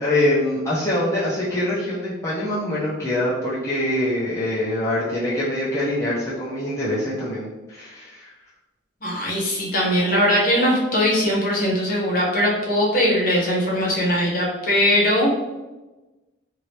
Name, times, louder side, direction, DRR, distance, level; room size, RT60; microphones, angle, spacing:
voice 1, 0.0-8.3, left 1 dB, 15° left, -9 dB, 0.5 m, -24 dB
voice 2, 9.0-15.4, equal, 45° left, -4 dB, 0.9 m, -20 dB
2.8 x 2.7 x 3.1 m, 1.1 s
head